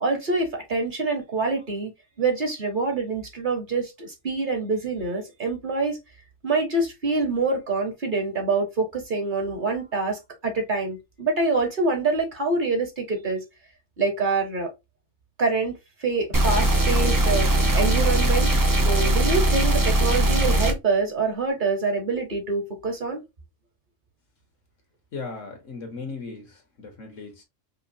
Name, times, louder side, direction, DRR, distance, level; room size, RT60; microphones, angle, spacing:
voice 1, 0.0-1.9 2.2-6.0 6.4-13.4 14.0-14.7 15.4-23.2, right 3 dB, 45° right, 1.1 m, -26 dB
sound 1, 16.3-20.7, right 1 dB, 25° right, 0.4 m, -20 dB
voice 2, 25.1-27.4, left 4 dB, 75° left, 1.6 m, -37 dB
5.1 x 2.2 x 2.6 m
omnidirectional pair, 1.3 m